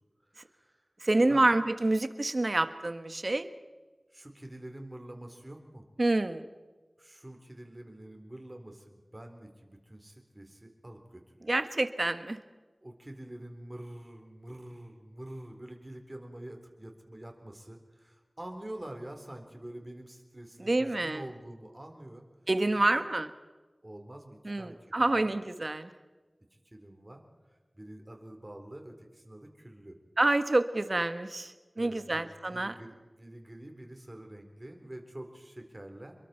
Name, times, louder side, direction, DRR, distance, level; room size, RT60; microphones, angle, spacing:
voice 1, 0.2-0.8 1.3-1.5 4.1-5.8 7.0-11.5 12.8-22.2 22.8-23.0 23.8-25.3 26.5-27.2 27.7-29.9 31.7-36.2, right 1 dB, 30° right, 4 dB, 4.1 m, -46 dB
voice 2, 1.0-3.5 6.0-6.5 11.5-12.4 20.6-21.2 22.5-23.3 24.4-25.9 30.2-32.7, right 2 dB, 55° right, 10 dB, 1.4 m, -27 dB
28.5 x 22.5 x 4.5 m, 1.3 s
wide cardioid pair, 60°, 0 cm